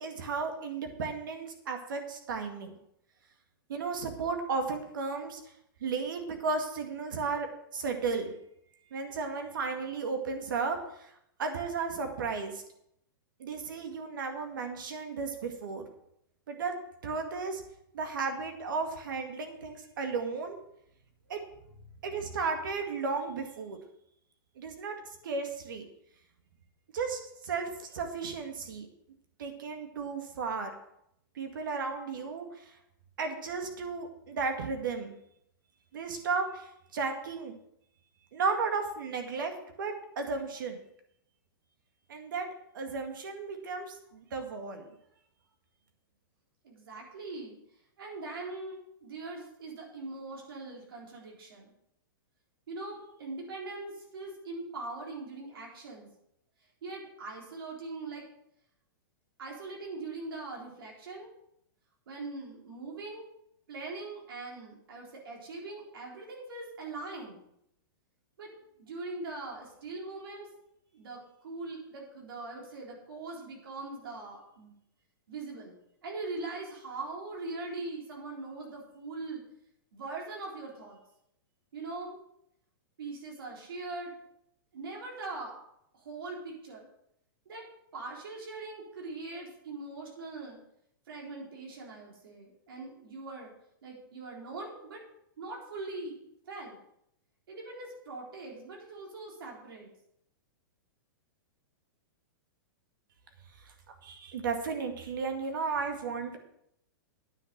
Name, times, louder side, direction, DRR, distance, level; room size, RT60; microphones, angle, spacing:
voice 1, 0.0-2.7 3.7-5.4 5.8-8.3 8.9-11.1 11.4-12.6 13.4-15.9 16.5-16.7 17.0-17.6 17.9-20.6 21.3-21.4 22.0-23.8 24.6-25.0 25.2-25.9 26.9-28.9 29.4-30.7 31.4-32.8 33.2-35.1 35.9-37.6 38.3-40.8 42.1-42.5 42.7-44.8 103.6-106.4, right 4 dB, 60° right, 5 dB, 2.0 m, -34 dB
voice 2, 46.6-47.6 48.0-51.7 52.7-56.1 56.8-58.3 59.4-61.3 62.1-63.2 63.7-67.4 68.4-68.5 68.8-70.5 70.9-74.7 75.3-75.7 76.0-79.4 79.9-81.0 81.7-82.2 83.0-84.1 84.7-85.6 85.9-86.9 87.5-87.7 87.9-90.6 91.1-93.5 93.8-95.0 95.4-96.2 96.5-96.8 97.5-99.9, right 3 dB, 80° right, -1 dB, 3.9 m, -41 dB
9.7 x 6.0 x 7.8 m, 0.76 s
supercardioid pair, 180°, 12 cm